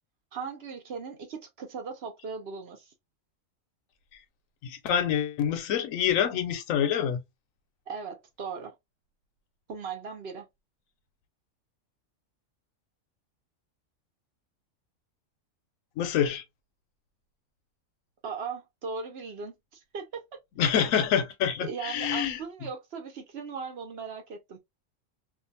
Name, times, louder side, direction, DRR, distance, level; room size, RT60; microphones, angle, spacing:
voice 1, 0.3-2.9 7.9-8.7 9.7-10.5 18.2-20.4 21.6-24.6, right 5 dB, 55° right, 1.0 m, -38 dB
voice 2, 4.6-7.2 16.0-16.4 20.6-22.4, left 8 dB, 80° left, 1.0 m, -26 dB
2.7 x 2.4 x 2.7 m
omnidirectional pair, 1.4 m